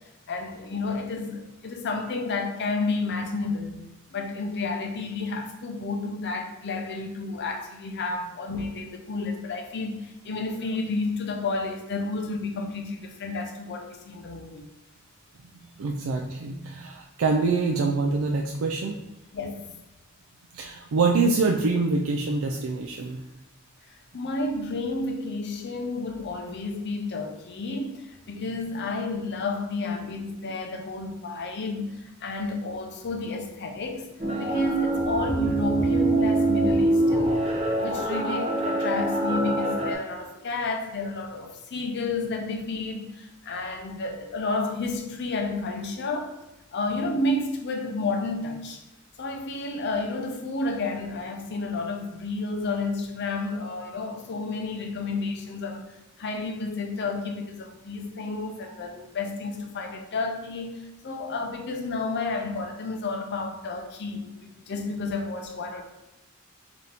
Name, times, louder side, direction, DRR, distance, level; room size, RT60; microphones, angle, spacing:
voice 1, 0.3-3.8 4.1-14.7 19.3-19.6 23.9-34.1 34.4-37.4 37.7-46.3 46.7-48.8 49.2-55.9 56.2-65.8, left 3 dB, 55° left, 4 dB, 0.6 m, -31 dB
voice 2, 15.8-19.0 20.5-23.2, right 3 dB, 70° right, 1 dB, 0.4 m, -25 dB
sound 1, 34.2-39.9, right 2 dB, 30° right, 0.7 m, -24 dB
4.0 x 2.8 x 3.4 m, 0.96 s
head